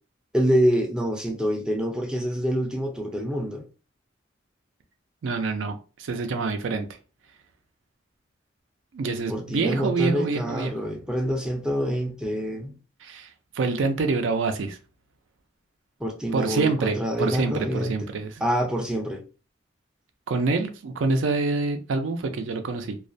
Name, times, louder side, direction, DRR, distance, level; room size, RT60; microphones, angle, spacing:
voice 1, 0.3-3.7 9.3-12.7 16.0-17.9 18.4-19.2, equal, 5° right, 0.3 m, -26 dB
voice 2, 5.2-6.9 8.9-10.7 13.0-14.8 16.3-18.4 20.3-23.0, right 3 dB, 90° right, 0.4 m, -26 dB
2.3 x 2.1 x 2.5 m
head